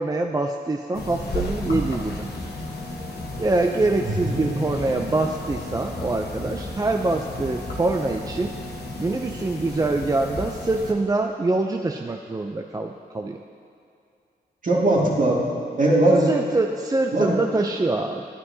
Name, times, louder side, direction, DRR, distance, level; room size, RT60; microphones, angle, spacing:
voice 1, 0.0-2.3 3.4-8.5 9.0-13.4 16.3-18.2, right 2 dB, 20° right, 4 dB, 0.4 m, -24 dB
sound 1, 0.9-10.9, left 2 dB, 65° left, 1.2 m, -33 dB
voice 2, 4.0-4.6 14.6-15.5 15.8-16.3 17.1-17.4, right 1 dB, 50° right, -4 dB, 2.1 m, -20 dB
11.0 x 9.5 x 2.7 m, 2.4 s
cardioid pair, 55°, 17 cm